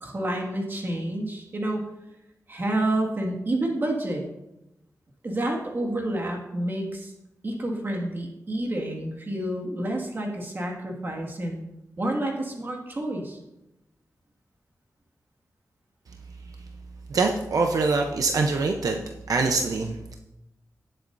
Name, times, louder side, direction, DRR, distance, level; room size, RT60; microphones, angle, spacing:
voice 1, 0.0-1.9 2.5-4.3 5.2-7.1 7.4-11.6 12.0-13.4, right 1 dB, 35° right, 0 dB, 2.0 m, -29 dB
voice 2, 17.1-19.0 19.3-20.1, right 3 dB, 75° right, 3 dB, 0.8 m, -24 dB
18.0 x 7.7 x 2.7 m, 0.91 s
wide cardioid pair, 135°, 6 cm